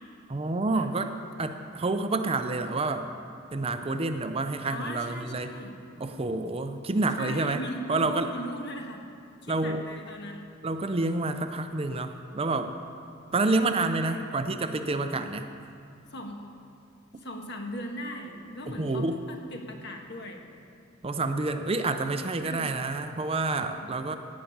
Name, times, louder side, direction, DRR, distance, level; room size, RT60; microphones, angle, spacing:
voice 1, 0.3-1.1 1.4-3.1 3.5-5.6 6.0-7.6 7.9-8.3 9.5-9.8 10.6-12.7 13.3-15.5 18.7-19.2 21.0-24.2, right 2 dB, 30° right, 8 dB, 0.5 m, -28 dB
voice 2, 4.6-5.7 7.2-9.0 9.4-10.5 14.0-14.4 16.1-16.4 17.2-20.5 22.4-22.7 23.5-23.9, left 1 dB, 60° left, 2 dB, 1.5 m, -39 dB
17.0 x 5.8 x 8.6 m, 2.4 s
head